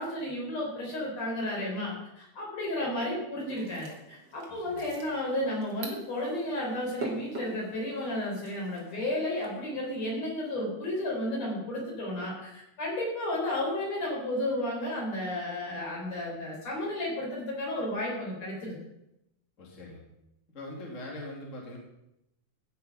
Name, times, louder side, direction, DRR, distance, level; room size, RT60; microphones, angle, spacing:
voice 1, 0.0-18.8, left 1 dB, 50° left, -3 dB, 5.0 m, -33 dB
sound 1, 3.4-9.5, right 3 dB, 40° right, 1.8 m, -44 dB
voice 2, 4.5-4.8 19.6-20.0 20.5-21.8, left 1 dB, 25° left, -2 dB, 1.9 m, -42 dB
15.5 x 6.6 x 5.4 m, 0.86 s
omnidirectional pair, 3.9 m